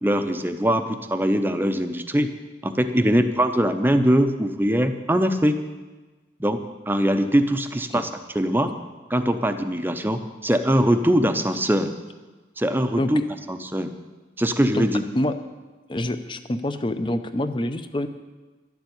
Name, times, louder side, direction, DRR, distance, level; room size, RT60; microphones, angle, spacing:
voice 1, 0.0-2.3 2.6-5.6 6.4-8.7 9.1-11.9 12.6-13.2 13.5-13.9 14.4-15.0, equal, 10° right, 8 dB, 0.6 m, -22 dB
voice 2, 15.9-18.1, left 1 dB, 25° left, 10 dB, 0.6 m, -26 dB
12.0 x 7.2 x 9.3 m, 1.3 s
head